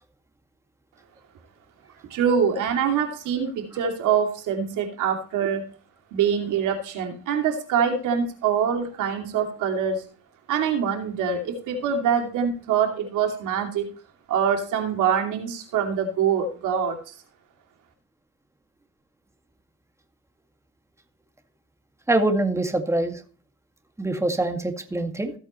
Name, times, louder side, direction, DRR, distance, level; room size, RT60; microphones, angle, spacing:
voice 1, 2.1-5.6 6.1-10.0 10.5-13.8 14.3-17.1, right 7 dB, 85° right, 3 dB, 2.7 m, -24 dB
voice 2, 22.1-23.2 24.0-25.3, right 2 dB, 10° right, 6 dB, 2.0 m, -24 dB
15.0 x 8.6 x 3.1 m, 0.40 s
cardioid pair, 90°, 30 cm